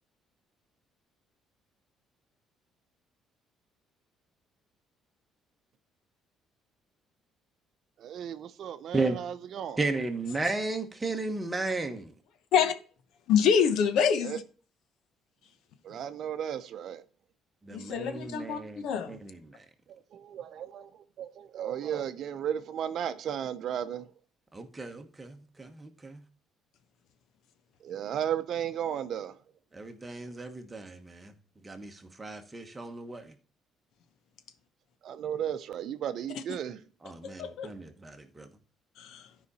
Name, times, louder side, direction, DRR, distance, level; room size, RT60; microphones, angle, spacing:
voice 1, 8.0-9.8 14.2-14.4 15.8-17.0 19.9-24.0 27.8-29.3 35.0-36.8, right 9 dB, 50° right, 0.7 m, -34 dB
voice 2, 9.8-12.1 17.6-19.6 24.5-26.2 29.7-31.3 31.6-33.3 37.0-38.5, right 3 dB, 15° right, 1.2 m, -34 dB
voice 3, 13.3-14.4 17.7-19.2 36.3-36.6 37.2-37.7 39.0-39.3, left 7 dB, 65° left, 1.0 m, -26 dB
12.5 x 5.0 x 4.2 m
cardioid pair, 150°, 0 cm